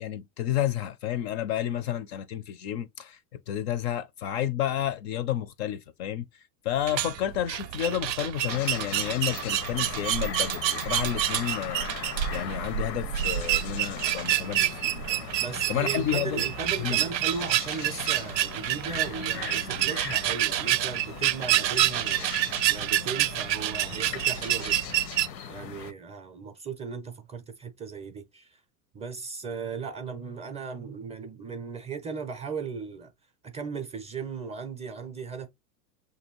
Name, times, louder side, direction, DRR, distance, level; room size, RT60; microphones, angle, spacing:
voice 1, 0.0-3.2 3.5-6.2 6.6-11.9 12.3-15.3 15.7-16.4 16.8-17.0, left 11 dB, 45° left, 0.4 m, -30 dB
sound 1, 6.8-25.3, right 13 dB, 90° right, 0.6 m, -28 dB
sound 2, 8.5-25.9, left 8 dB, 90° left, 0.8 m, -39 dB
voice 2, 15.4-22.4 22.7-24.8 25.5-28.6 28.9-33.1 33.4-35.5, right 5 dB, 15° right, 0.5 m, -37 dB
6.5 x 2.7 x 2.9 m
hypercardioid pair, 115°, 49 cm